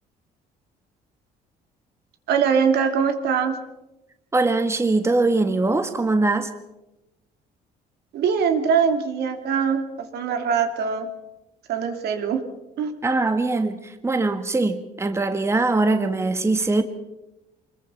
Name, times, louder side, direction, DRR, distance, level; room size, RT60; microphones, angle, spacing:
voice 1, 2.3-3.6 8.1-11.1 11.7-12.4 12.8-12.9, right 6 dB, 70° right, 6 dB, 2.9 m, -22 dB
voice 2, 4.3-6.5 13.0-16.8, right 3 dB, 15° right, 8 dB, 1.6 m, -22 dB
25.0 x 21.5 x 5.8 m, 0.96 s
cardioid pair, 110°, 17 cm